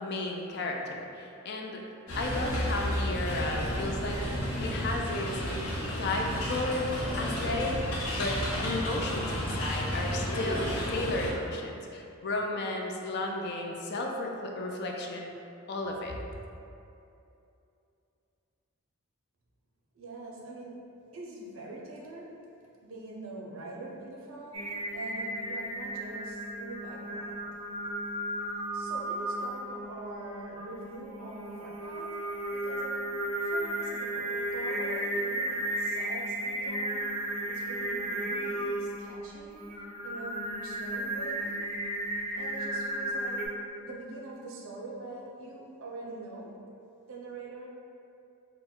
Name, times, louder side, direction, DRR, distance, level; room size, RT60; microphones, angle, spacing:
voice 1, 0.0-1.8 2.2-4.2 4.6-5.4 6.0-15.3 15.7-16.2, left 2 dB, 50° left, 1 dB, 0.4 m, -33 dB
sound 1, 2.1-11.3, equal, 70° left, 0.7 m, -32 dB
voice 2, 19.9-20.9 21.1-22.3 22.8-24.7 24.9-27.4 28.7-32.1 32.5-33.1 33.4-37.1 37.4-39.6 40.0-41.5 42.1-46.6 47.1-47.7, right 2 dB, 65° right, -3 dB, 0.7 m, -44 dB
Singing, 24.5-43.5, right 1 dB, 25° right, 0.4 m, -34 dB
4.0 x 2.2 x 3.7 m, 2.7 s
head